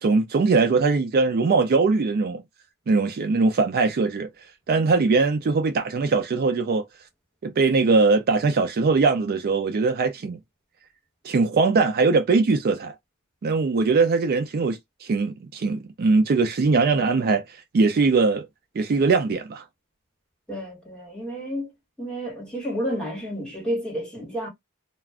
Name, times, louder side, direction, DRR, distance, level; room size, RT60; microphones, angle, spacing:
voice 1, 0.0-2.4 2.9-4.3 4.7-6.8 7.4-10.4 11.2-12.9 13.4-18.5 18.8-19.6, right 4 dB, 45° right, 0.4 m, -21 dB
voice 2, 20.5-21.7 22.0-24.5, equal, 5° left, 1.3 m, -30 dB
2.4 x 2.2 x 3.4 m
head